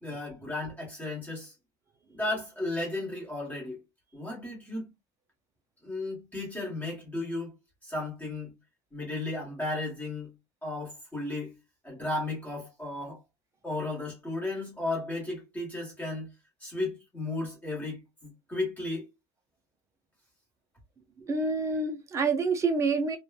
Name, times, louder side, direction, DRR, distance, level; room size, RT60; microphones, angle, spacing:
voice 1, 0.0-1.5 2.1-3.8 4.1-4.9 5.8-7.5 7.8-8.5 8.9-10.3 10.6-11.6 11.8-13.2 13.6-16.3 16.6-19.0, left 2 dB, 10° left, 1.3 m, -34 dB
voice 2, 21.2-23.2, right 4 dB, 15° right, 0.5 m, -27 dB
2.9 x 2.2 x 2.3 m
cardioid pair, 165°, 19 cm